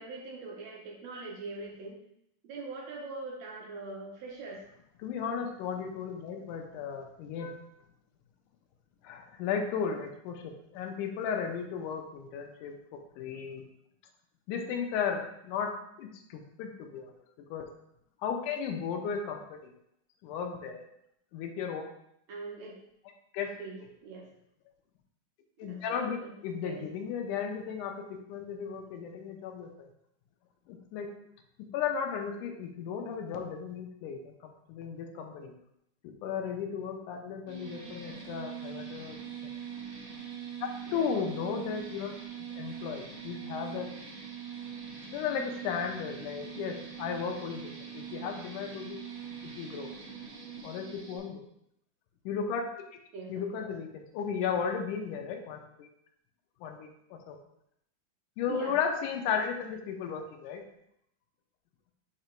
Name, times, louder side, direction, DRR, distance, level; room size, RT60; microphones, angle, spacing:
voice 1, 0.0-2.0 2.4-4.6 22.3-22.8 23.5-24.3 25.6-26.3 26.6-26.8 40.9-41.3 53.1-53.7 58.5-58.7, right 3 dB, 70° right, -2 dB, 1.8 m, -42 dB
voice 2, 5.0-7.6 9.0-13.7 14.5-17.1 17.5-17.7 18.2-19.6 20.2-20.8 21.3-21.9 23.3-23.5 25.6-28.0 28.3-29.7 30.7-31.1 31.7-35.5 36.0-39.2 40.6-42.1 42.4-43.9 45.1-49.0 49.6-49.9 50.6-51.4 52.3-52.6 53.3-55.9 56.6-57.4 58.4-60.6, left 6 dB, 80° left, 4 dB, 2.2 m, -35 dB
sound 1, 37.5-51.2, right 7 dB, 85° right, 2.9 m, -43 dB
8.6 x 2.9 x 4.4 m, 0.74 s
omnidirectional pair, 3.6 m